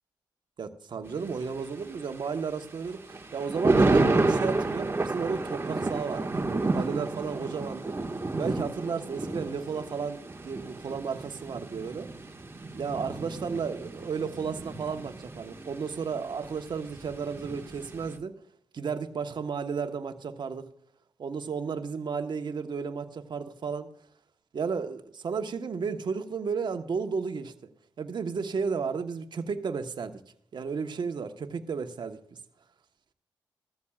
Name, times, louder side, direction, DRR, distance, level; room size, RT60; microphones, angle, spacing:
voice 1, 0.6-8.0 8.4-12.1 12.7-18.4 18.7-20.7 21.2-23.9 24.5-27.5 28.0-30.2 30.5-32.2, right 5 dB, 60° right, 1.2 m, -33 dB
Thunder, 1.1-18.2, right 2 dB, 30° right, 1.7 m, -31 dB
15.5 x 14.0 x 2.4 m
supercardioid pair, 45°, 9 cm